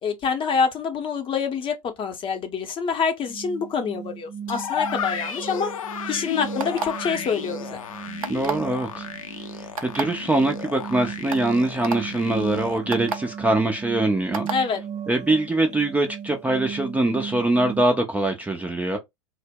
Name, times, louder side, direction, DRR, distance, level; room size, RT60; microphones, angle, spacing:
voice 1, 0.0-5.7 6.1-7.8 14.5-14.8, left 5 dB, 30° left, 0.7 m, -26 dB
sound 1, 3.2-17.8, right 8 dB, 40° right, 0.7 m, -36 dB
sound 2, 4.5-12.8, left 7 dB, 80° left, 0.5 m, -33 dB
sound 3, 6.6-7.1 8.2-8.7 9.8-10.0 10.8-10.9 11.3-11.4 11.8-12.0 12.9-13.2 14.3-14.6, right 5 dB, 85° right, 0.4 m, -28 dB
voice 2, 8.3-9.1 9.4-14.5 15.1-19.0, right 2 dB, 10° right, 0.4 m, -23 dB
2.0 x 2.0 x 3.5 m
hypercardioid pair, 85°, 17 cm